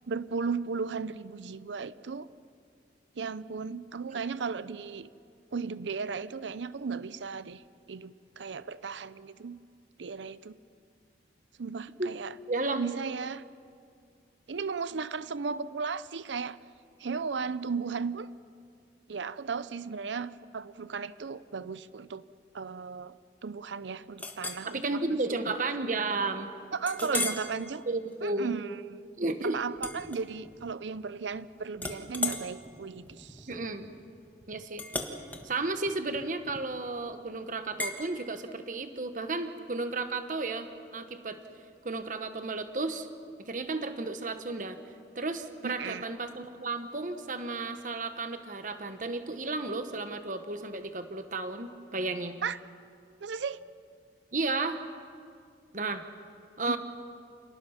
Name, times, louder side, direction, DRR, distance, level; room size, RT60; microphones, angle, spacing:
voice 1, 0.1-2.3 3.2-5.1 5.5-7.6 7.9-9.6 10.0-10.6 11.6-12.3 12.7-13.4 14.5-16.6 17.0-18.3 19.1-22.2 22.5-23.2 23.4-25.0 25.5-25.6 26.7-27.8 28.2-28.8 29.4-33.5 45.6-46.0 52.4-52.6 53.2-53.6 56.7-56.8, right 5 dB, 90° right, 16 dB, 0.6 m, -35 dB
voice 2, 12.5-12.8 24.7-26.5 27.1-27.3 27.9-28.5 29.2-29.6 33.5-33.9 34.5-34.8 35.4-41.4 41.8-43.1 43.4-44.8 45.1-52.4 54.3-54.8 55.7-56.0 56.6-56.8, right 3 dB, 45° right, 8 dB, 1.2 m, -33 dB
Chink clink, 24.2-24.7 25.2-25.4 25.8-25.9 26.9-27.5 28.0-28.3 29.8-30.7 31.0-31.4 31.8-36.9 37.8-38.0, left 3 dB, 10° left, 1.4 m, -37 dB
28.0 x 19.0 x 5.8 m, 2.3 s
head